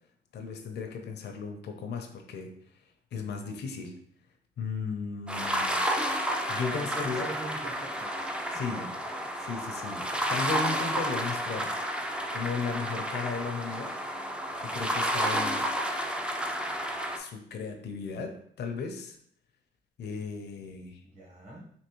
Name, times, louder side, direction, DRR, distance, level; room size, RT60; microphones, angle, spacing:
voice 1, 0.3-2.5 3.1-3.9 4.6-5.8 6.5-7.3 8.5-8.9 9.4-11.7 12.3-13.9 14.7-15.6 17.2-19.2 20.0-21.0, left 5 dB, 55° left, 4 dB, 0.6 m, -35 dB
sound 1, 5.3-17.2, equal, 5° right, 0.4 m, -31 dB
voice 2, 6.5-8.2 8.5-8.9 21.0-21.7, right 2 dB, 35° right, -6 dB, 1.2 m, -42 dB
3.4 x 2.8 x 3.0 m, 0.66 s
cardioid pair, 90°, 20 cm